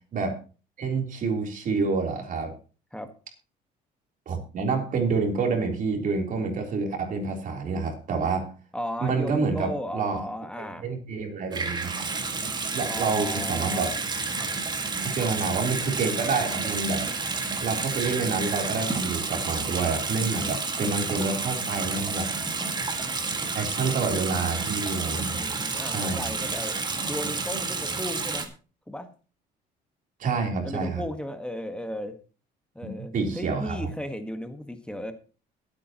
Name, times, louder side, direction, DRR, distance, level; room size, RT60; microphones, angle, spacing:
voice 1, 0.8-2.5 4.3-8.5 9.0-10.2 10.8-12.2 12.7-13.9 15.0-17.0 17.6-22.3 23.5-25.6 25.8-26.3 30.2-31.0 32.8-33.9, right 4 dB, 50° right, 3 dB, 3.5 m, -28 dB
voice 2, 8.7-10.8 12.9-13.9 25.3-28.5 28.9-29.1 30.6-32.2 32.7-35.1, left 1 dB, 5° left, 7 dB, 1.4 m, -35 dB
Water tap faucet / Sink (filling or washing) / Bathtub (filling or washing), 11.5-28.5, right 4 dB, 25° right, 1.9 m, -30 dB
22.0 x 8.6 x 3.0 m, 0.35 s
cardioid pair, 110°, 17 cm